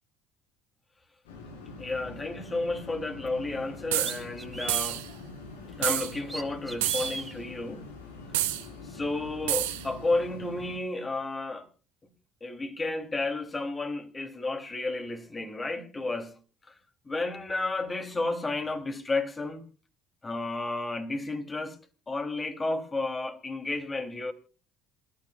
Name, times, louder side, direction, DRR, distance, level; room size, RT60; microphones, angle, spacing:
sound 1, 1.3-10.8, left 3 dB, 90° left, 4.2 m, -44 dB
voice 1, 1.8-5.0 5.8-7.9 8.8-11.7 12.4-16.3 16.7-16.8 17.0-19.6 20.2-21.8 22.1-24.3, left 2 dB, 25° left, 3.1 m, -32 dB
sound 2, 3.3-3.4 4.0-5.0 6.1-7.3, right 2 dB, 10° right, 2.5 m, -38 dB
sound 3, 3.9-4.2 4.7-5.1 5.8-6.1 6.8-7.2 8.3-8.6 9.5-9.8, right 15 dB, 85° right, 2.1 m, -28 dB
27.5 x 12.5 x 2.4 m
hypercardioid pair, 70°, 0 cm